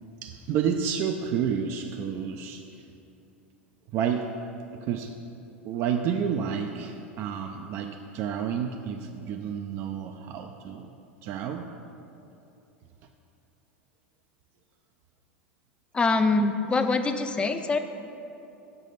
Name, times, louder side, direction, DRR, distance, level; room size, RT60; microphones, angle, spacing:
voice 1, 0.2-2.6 3.9-4.3 4.7-5.1 5.6-10.9 11.2-11.7, right 7 dB, 45° right, 4 dB, 0.4 m, -30 dB
voice 2, 15.9-17.8, left 3 dB, 15° left, 8 dB, 0.5 m, -24 dB
6.7 x 5.6 x 5.3 m, 2.8 s
figure-of-eight pair, 80°, 6 cm